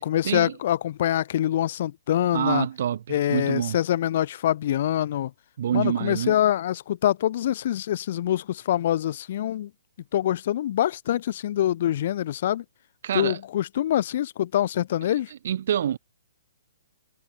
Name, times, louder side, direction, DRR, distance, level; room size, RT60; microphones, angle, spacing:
voice 1, 0.0-2.7 3.1-5.3 5.7-9.7 10.1-12.6 13.1-15.3, left 12 dB, 45° left, 0.3 m, -25 dB
voice 2, 2.3-3.8 5.6-6.4 13.0-13.4 15.3-16.0, right 10 dB, 50° right, 1.5 m, -26 dB
figure-of-eight pair, 125°, 0 cm